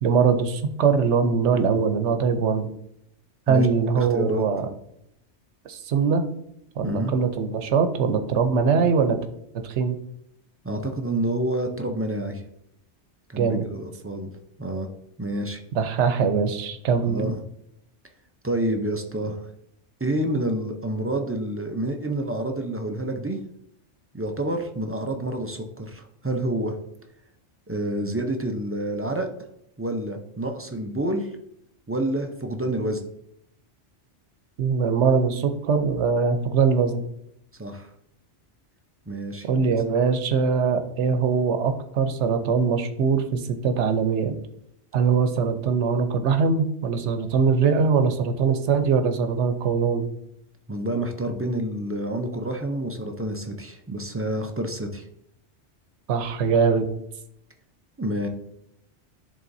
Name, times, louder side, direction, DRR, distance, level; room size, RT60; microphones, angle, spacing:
voice 1, 0.0-2.7 3.5-4.7 5.7-6.2 6.8-9.2 9.6-10.0 13.4-13.6 15.7-17.3 34.6-37.0 39.5-44.3 44.9-50.1 56.1-56.9, right 5 dB, 75° right, 7 dB, 1.0 m, -22 dB
voice 2, 4.0-4.4 6.8-7.1 10.6-12.4 13.3-14.3 14.6-14.9 15.2-15.6 17.1-17.4 18.4-19.4 20.0-23.4 24.1-26.8 27.7-29.3 29.8-31.3 31.9-33.0 37.6-37.9 39.1-39.5 50.7-55.1 58.0-58.3, right 1 dB, 25° right, 4 dB, 0.3 m, -28 dB
11.0 x 3.7 x 2.6 m, 0.76 s
omnidirectional pair, 1.2 m